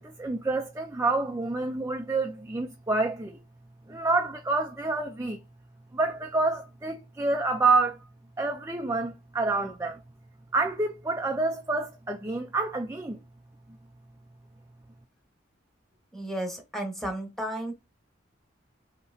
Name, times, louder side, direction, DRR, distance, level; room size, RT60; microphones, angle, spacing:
voice 1, 0.0-3.4 3.9-5.4 5.9-8.0 8.4-10.0 10.5-13.2, right 3 dB, 15° right, 0.4 m, -28 dB
voice 2, 16.1-17.7, right 1 dB, ahead, 1.2 m, -33 dB
5.5 x 2.9 x 2.7 m
head